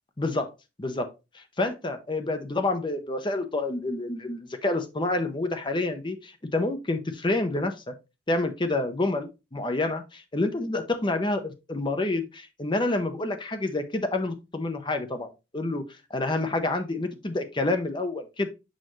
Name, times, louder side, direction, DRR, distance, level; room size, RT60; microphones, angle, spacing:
voice 1, 0.2-0.5 0.8-1.1 1.3-7.9 8.3-15.8 16.1-18.5, left 2 dB, 25° left, 7 dB, 0.8 m, -28 dB
6.5 x 5.3 x 3.1 m, 0.26 s
head